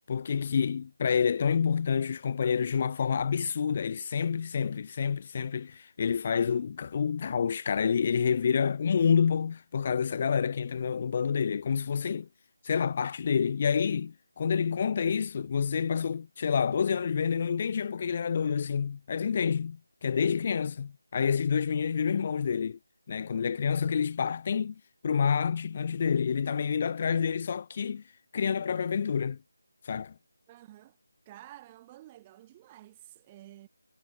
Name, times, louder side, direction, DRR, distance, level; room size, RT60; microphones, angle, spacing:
voice 1, 0.1-12.3 12.6-22.8 23.1-28.0 28.3-29.4 29.8-30.1, left 6 dB, 30° left, 0.4 m, -28 dB
voice 2, 30.5-31.0 31.2-33.7, right 15 dB, 15° right, 1.4 m, -51 dB
figure-of-eight pair, 160°, 0 cm